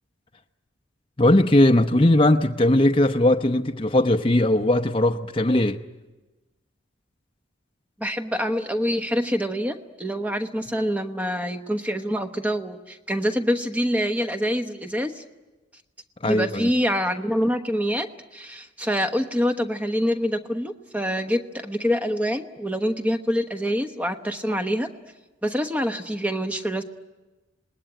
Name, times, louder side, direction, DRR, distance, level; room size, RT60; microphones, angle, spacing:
voice 1, 1.2-5.8 16.2-16.7, left 1 dB, 25° left, 0.8 m, -19 dB
voice 2, 8.0-15.2 16.2-24.9 25.4-26.8, equal, 10° right, 1.1 m, -26 dB
27.0 x 20.0 x 9.0 m
head